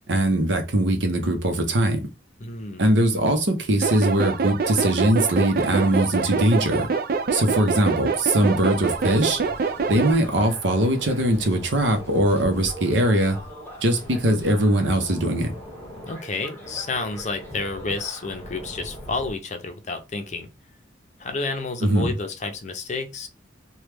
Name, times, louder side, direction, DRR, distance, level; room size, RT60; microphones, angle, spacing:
voice 1, 0.1-2.0 2.8-6.9 7.3-9.4 9.9-13.4 13.8-15.5 21.8-22.1, right 1 dB, 75° right, 0.8 m, -21 dB
voice 2, 2.4-2.8 16.0-20.5 21.2-23.3, left 3 dB, 40° left, 0.5 m, -30 dB
sound 1, 3.8-10.2, right 5 dB, 50° right, 0.4 m, -25 dB
sound 2, 8.3-19.3, equal, 10° left, 0.8 m, -40 dB
3.1 x 2.3 x 3.3 m
head